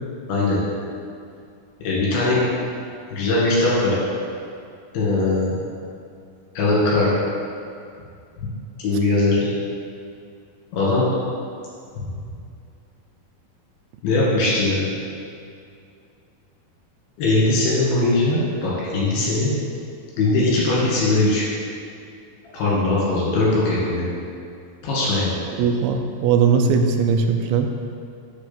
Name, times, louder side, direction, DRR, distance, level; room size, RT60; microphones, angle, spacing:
voice 1, 1.8-2.4 3.1-4.0 4.9-5.6 6.6-7.1 8.8-9.4 10.7-11.1 14.0-14.8 17.2-19.5 20.2-21.4 22.5-24.1 24.8-25.4, left 2 dB, 80° left, -7 dB, 4.0 m, -20 dB
voice 2, 25.6-27.7, right 6 dB, 90° right, 5 dB, 2.5 m, -19 dB
9.2 x 3.5 x 5.9 m, 2.4 s
omnidirectional pair, 4.2 m